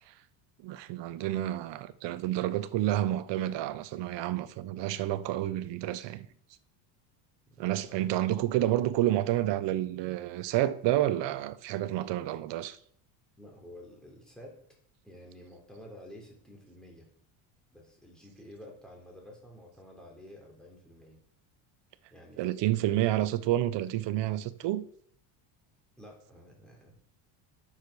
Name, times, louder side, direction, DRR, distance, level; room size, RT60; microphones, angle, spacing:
voice 1, 0.6-6.3 7.6-12.8 22.4-24.8, right 14 dB, 60° right, 0.9 m, -29 dB
voice 2, 7.5-8.0 13.4-14.6 15.0-17.1 17.7-21.2 22.1-22.9 26.0-26.9, equal, ahead, 3.9 m, -51 dB
10.0 x 6.8 x 6.9 m
cardioid pair, 120°, 49 cm